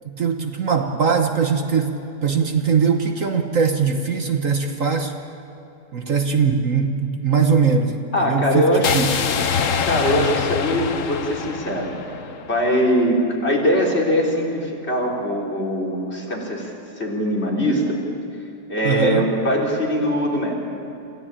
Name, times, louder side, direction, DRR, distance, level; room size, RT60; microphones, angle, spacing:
voice 1, 0.0-1.9 2.2-5.1 5.9-9.2 18.8-19.3, right 5 dB, 55° right, 5 dB, 1.5 m, -21 dB
voice 2, 8.1-9.4 9.9-11.9 12.5-16.7 17.0-18.0 18.7-20.5, equal, 40° left, -2 dB, 3.8 m, -21 dB
sound 1, 8.8-12.9, left 6 dB, 55° left, 1.2 m, -25 dB
27.0 x 16.0 x 8.8 m, 2.8 s
omnidirectional pair, 1.8 m